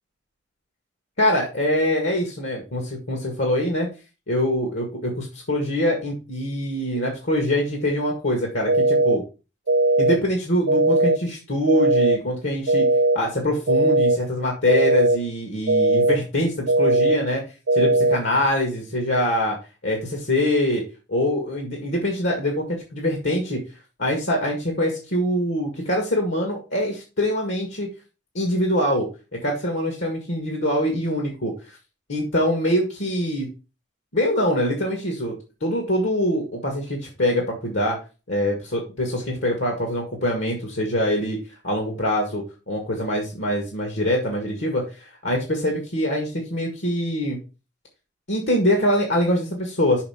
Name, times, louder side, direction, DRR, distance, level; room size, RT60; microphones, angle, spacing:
voice 1, 1.2-3.9 4.3-9.2 10.0-12.9 13.1-17.4 17.7-19.6 19.8-22.6 22.9-23.6 24.0-27.9 28.3-29.1 29.4-31.8 32.1-33.5 34.1-35.3 35.6-38.0 38.3-41.4 41.6-47.4 48.3-50.0, left 1 dB, 70° left, 1 dB, 1.9 m, -24 dB
sound 1, 8.7-9.2 9.7-10.2 10.7-11.2 11.7-12.2 12.7-13.2 13.7-14.2 14.7-15.2 15.7-16.2 16.7-17.2 17.7-18.2, right 2 dB, 85° right, 0.7 m, -18 dB
5.9 x 5.7 x 5.6 m, 0.32 s
head